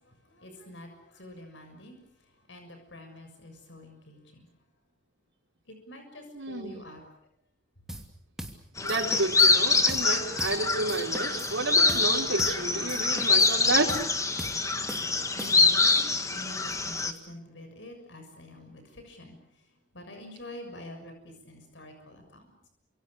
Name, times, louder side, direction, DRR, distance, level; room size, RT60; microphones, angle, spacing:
voice 1, 0.0-2.0 2.5-4.5 5.7-7.0 15.3-19.4 19.9-22.4, left 1 dB, 70° left, 5 dB, 6.8 m, -46 dB
voice 2, 6.3-6.8 8.8-13.9, right 3 dB, 90° right, -3 dB, 4.6 m, -30 dB
sound 1, 7.9-8.1 8.4-8.6 8.9-9.5 9.9-10.1 10.4-10.6 10.9-11.6 11.9-12.1 12.4-12.6 12.9-13.6 13.9-14.1 14.4-14.6 14.9-15.8, right 1 dB, 5° right, 2.7 m, -40 dB
sound 2, 8.8-17.1, left 3 dB, 15° left, 1.8 m, -25 dB
29.0 x 26.5 x 6.7 m, 0.72 s
head